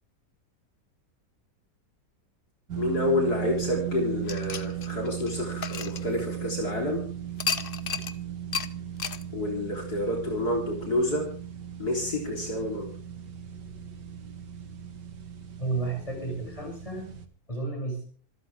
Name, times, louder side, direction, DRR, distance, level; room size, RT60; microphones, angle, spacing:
sound 1, 2.7-17.3, right 9 dB, 75° right, 2.4 m, -37 dB
voice 1, 2.8-7.0 9.3-11.3 11.8-12.9, left 1 dB, 65° left, 1 dB, 4.3 m, -28 dB
sound 2, 4.3-6.7 7.4-8.2 8.5-8.7 9.0-9.2, left 6 dB, 40° left, 1.0 m, -33 dB
voice 2, 15.6-17.1 17.5-18.0, right 3 dB, 20° left, 1 dB, 7.5 m, -32 dB
26.5 x 13.5 x 3.6 m, 0.41 s
omnidirectional pair, 1.8 m